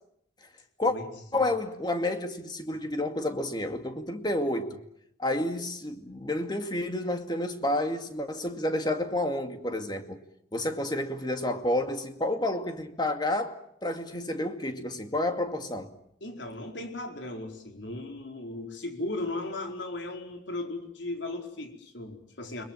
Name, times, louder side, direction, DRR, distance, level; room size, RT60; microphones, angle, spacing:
voice 1, 1.3-4.8 5.2-10.2 10.5-15.9, left 1 dB, 25° left, 2.3 m, -30 dB
voice 2, 16.2-22.6, left 2 dB, 80° left, 4.8 m, -36 dB
29.5 x 22.0 x 7.5 m
head